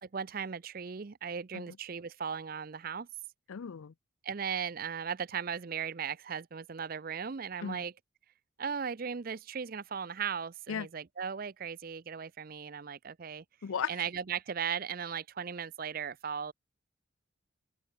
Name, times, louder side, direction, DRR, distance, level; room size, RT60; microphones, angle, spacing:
voice 1, 0.0-3.1 4.2-7.9 8.6-13.4 13.9-16.5, right 7 dB, 45° right, 0.5 m, -37 dB
voice 2, 3.5-3.9 7.6-7.8 10.7-10.9 13.6-13.9, left 7 dB, 80° left, 0.5 m, -36 dB
open air
head